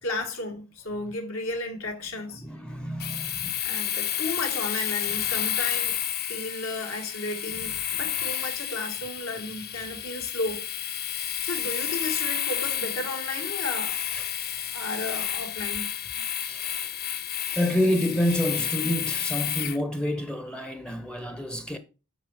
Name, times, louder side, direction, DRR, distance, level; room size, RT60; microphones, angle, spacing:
voice 1, 0.0-2.4 3.6-6.0 6.3-10.6 11.4-14.0 14.7-15.9, left 2 dB, 70° left, 1.4 m, -33 dB
voice 2, 2.4-3.5 14.2-14.3 16.2-16.9 17.5-21.8, left 1 dB, 5° left, 0.5 m, -28 dB
Domestic sounds home sounds, 3.0-19.8, left 10 dB, 45° left, 0.7 m, -31 dB
8.0 x 4.6 x 4.7 m
head